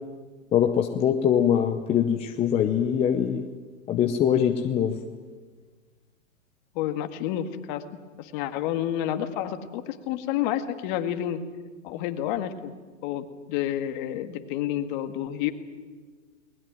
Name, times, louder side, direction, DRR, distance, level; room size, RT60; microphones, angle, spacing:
voice 1, 0.5-3.4 3.9-5.0, left 9 dB, 15° left, 5 dB, 0.8 m, -23 dB
voice 2, 6.7-7.8 8.2-11.4 11.8-12.7 13.0-15.5, left 11 dB, 35° left, 8 dB, 1.9 m, -29 dB
21.5 x 20.5 x 9.2 m, 1.4 s
hypercardioid pair, 140°, 40 cm